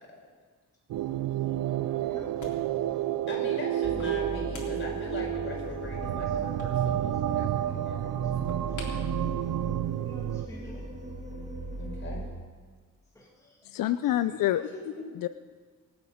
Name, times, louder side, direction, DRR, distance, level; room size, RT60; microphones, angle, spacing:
sound 1, 0.9-10.5, right 12 dB, 85° right, 0.5 m, -30 dB
voice 1, 1.5-2.6 3.0-3.1 10.0-10.9 13.2-13.7, left 1 dB, 10° left, -2 dB, 1.8 m, -50 dB
sound 2, 1.7-10.4, left 3 dB, 65° left, 3.5 m, -51 dB
voice 2, 3.3-8.7 11.8-12.3 14.7-15.1, left 2 dB, 35° left, -1 dB, 4.9 m, -40 dB
sound 3, 3.8-12.3, right 1 dB, 20° right, 2.0 m, -39 dB
voice 3, 13.6-14.7 15.1-15.3, left 13 dB, 85° left, 12 dB, 0.5 m, -27 dB
25.5 x 9.0 x 5.1 m, 1.5 s
wide cardioid pair, 140°, 32 cm